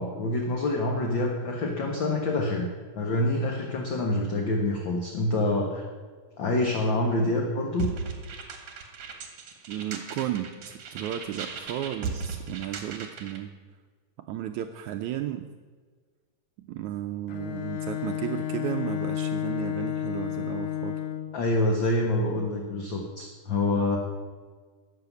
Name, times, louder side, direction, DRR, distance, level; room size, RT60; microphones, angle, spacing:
voice 1, 0.0-2.7 2.9-5.8 6.4-7.9 21.3-24.0, left 2 dB, 50° left, 1 dB, 1.6 m, -26 dB
sound 1, 7.8-13.4, right 5 dB, 55° right, 2.4 m, -37 dB
voice 2, 9.7-13.5 14.2-15.5 16.6-21.0, right 12 dB, 80° right, 7 dB, 1.7 m, -34 dB
Bowed string instrument, 17.3-21.4, left 10 dB, 80° left, 2.8 m, -31 dB
13.5 x 7.8 x 9.4 m, 1.5 s
omnidirectional pair, 3.9 m